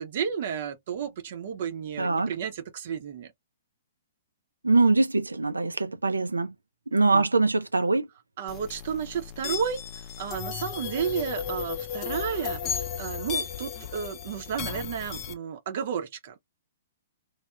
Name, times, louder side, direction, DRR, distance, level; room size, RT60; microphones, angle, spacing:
voice 1, 0.0-3.3 6.9-7.3 8.4-16.4, right 7 dB, 55° right, 0.7 m, -32 dB
voice 2, 2.0-2.3 4.6-6.5 6.9-8.1, right 3 dB, 90° right, 0.4 m, -23 dB
sound 1, 8.5-15.3, left 8 dB, 30° left, 0.5 m, -34 dB
3.1 x 2.1 x 2.3 m
figure-of-eight pair, 120°, 0 cm